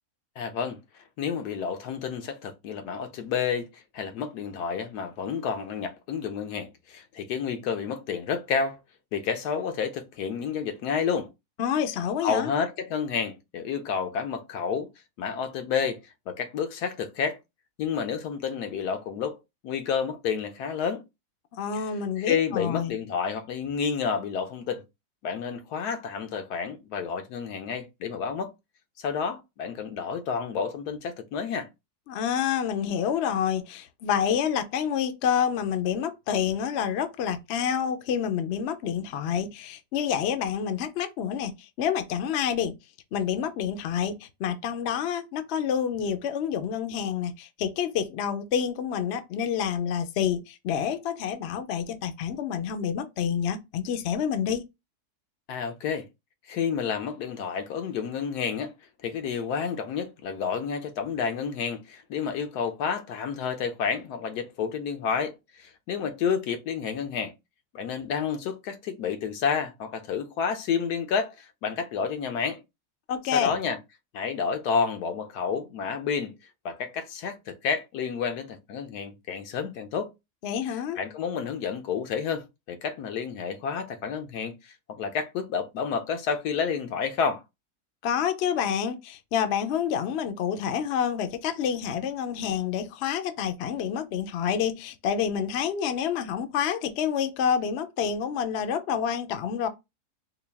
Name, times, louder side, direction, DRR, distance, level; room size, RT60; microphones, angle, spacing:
voice 1, 0.4-0.8 1.2-8.8 9.1-11.3 12.2-14.9 15.2-16.0 16.3-17.4 17.8-19.4 19.6-21.0 22.2-24.8 25.2-28.5 29.0-31.7 55.5-56.0 56.5-58.7 59.0-67.3 67.7-72.6 73.3-73.8 74.1-76.3 76.6-80.1 81.0-87.4, left 6 dB, 85° left, 1.2 m, -30 dB
voice 2, 11.6-12.5 21.5-22.9 32.1-42.7 43.1-54.6 73.1-73.5 80.4-81.0 88.0-99.7, left 8 dB, 60° left, 0.7 m, -28 dB
4.0 x 2.3 x 3.4 m
omnidirectional pair, 1.7 m